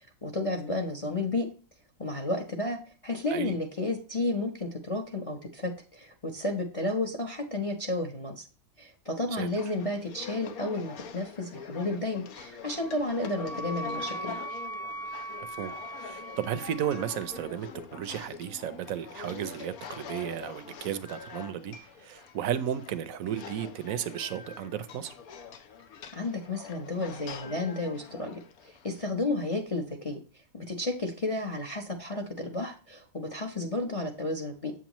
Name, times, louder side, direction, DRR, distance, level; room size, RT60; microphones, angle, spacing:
voice 1, 0.2-1.5 2.0-8.4 8.8-14.4 26.1-30.2 30.5-34.7, left 2 dB, 30° left, 0.7 m, -32 dB
sound 1, 9.4-29.1, left 7 dB, 85° left, 1.3 m, -45 dB
Wind instrument woodwind instrument, 12.7-17.5, right 2 dB, 40° right, 0.5 m, -40 dB
voice 2, 15.4-25.1, right 10 dB, 75° right, 1.1 m, -34 dB
7.7 x 7.2 x 3.0 m
omnidirectional pair, 1.5 m